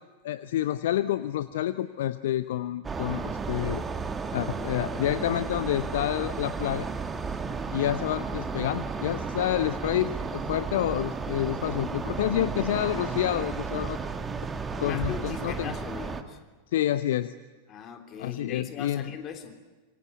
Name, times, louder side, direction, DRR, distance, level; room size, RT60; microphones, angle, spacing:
voice 1, 0.2-3.8 4.3-6.9 7.7-14.0 14.8-15.7 16.7-17.3 18.2-19.0, left 12 dB, 55° left, 14 dB, 0.7 m, -28 dB
sound 1, 2.8-16.2, right 4 dB, 15° right, 1.9 m, -33 dB
voice 2, 14.7-16.4 17.7-19.6, left 7 dB, 30° left, 5 dB, 3.3 m, -40 dB
26.5 x 24.5 x 8.2 m, 1.3 s
figure-of-eight pair, 90°, 0 cm